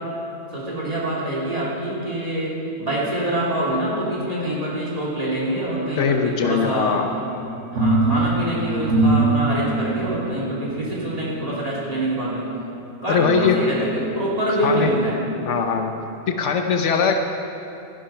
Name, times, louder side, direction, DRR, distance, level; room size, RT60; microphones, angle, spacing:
voice 1, 0.5-7.0 7.7-12.5 13.0-15.2, right 1 dB, 30° right, -5 dB, 2.9 m, -25 dB
voice 2, 6.0-7.1 13.1-13.6 14.6-14.9 15.5-15.9 16.3-17.2, left 6 dB, 80° left, 5 dB, 1.1 m, -20 dB
sound 1, 7.0-12.8 13.3-14.4 14.9-15.0, right 2 dB, 85° right, 1.7 m, -24 dB
14.5 x 10.0 x 5.7 m, 2.8 s
omnidirectional pair, 1.2 m